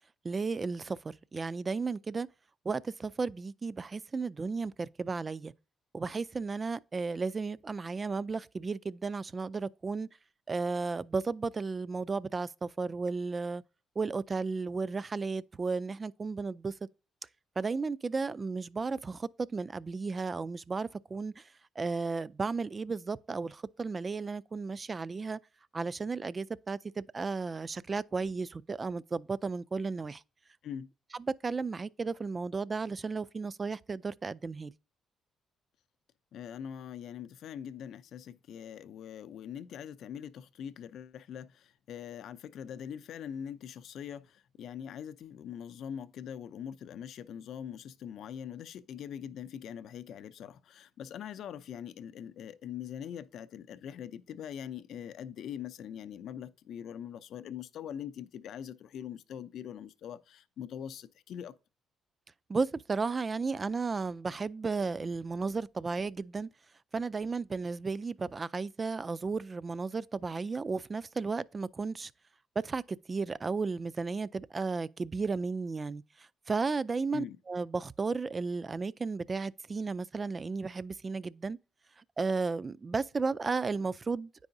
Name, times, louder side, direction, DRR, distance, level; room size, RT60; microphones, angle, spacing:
voice 1, 0.2-2.3 2.6-5.5 5.9-10.1 10.5-13.6 14.0-16.7 17.6-21.5 21.8-25.4 25.7-30.2 31.1-34.7 62.5-66.5 66.9-72.1 72.6-81.6 82.0-84.3, right 4 dB, 35° right, 0.3 m, -34 dB
voice 2, 36.3-61.5 77.1-77.4, left 9 dB, 70° left, 0.5 m, -42 dB
9.6 x 4.7 x 2.6 m
supercardioid pair, 65°, 0 cm